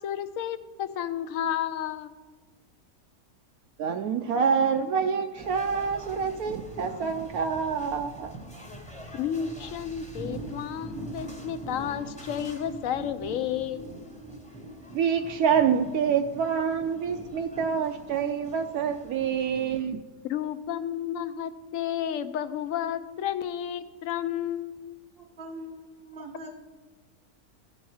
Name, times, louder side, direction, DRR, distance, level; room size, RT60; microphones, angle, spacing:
voice 1, 0.0-2.1 9.1-13.8 20.2-25.0, left 10 dB, 70° left, 12 dB, 0.9 m, -32 dB
voice 2, 3.8-8.4 14.9-20.0, right 6 dB, 75° right, 6 dB, 1.0 m, -26 dB
sound 1, 5.4-19.8, right 1 dB, 5° left, 0.9 m, -43 dB
voice 3, 25.2-26.6, right 1 dB, 50° right, 3 dB, 0.8 m, -42 dB
14.5 x 5.4 x 4.8 m, 1.3 s
omnidirectional pair, 1.6 m